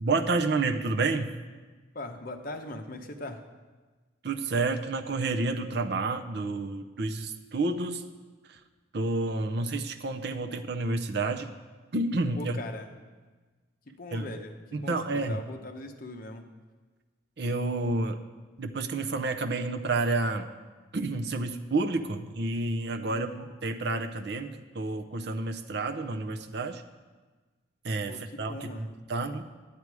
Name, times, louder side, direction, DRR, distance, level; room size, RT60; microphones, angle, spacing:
voice 1, 0.0-1.3 4.2-8.0 8.5-8.6 8.9-11.5 11.9-12.6 14.1-14.2 14.7-15.4 17.4-18.2 18.6-20.5 20.9-26.8 27.8-29.5, right 3 dB, 60° right, 6 dB, 0.6 m, -30 dB
voice 2, 1.9-3.4 12.4-12.9 13.9-16.5 23.1-23.5 28.1-28.9, left 2 dB, 45° left, 5 dB, 0.8 m, -40 dB
10.5 x 8.3 x 4.8 m, 1.3 s
head